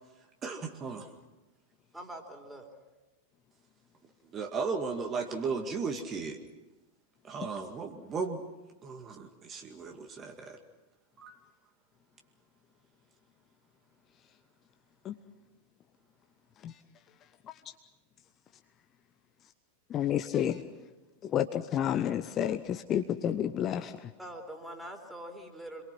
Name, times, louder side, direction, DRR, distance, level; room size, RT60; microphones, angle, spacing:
voice 1, 0.4-1.1 4.3-6.4 7.2-8.4 8.8-10.6 11.2-11.4, right 4 dB, 25° right, 4 dB, 2.1 m, -35 dB
voice 2, 1.9-2.7 24.2-25.8, right 1 dB, 5° right, 3 dB, 3.9 m, -44 dB
voice 3, 19.9-20.7 21.2-24.1, left 10 dB, 30° left, 8 dB, 0.9 m, -30 dB
27.5 x 22.5 x 6.1 m, 1.1 s
figure-of-eight pair, 90°, 0 cm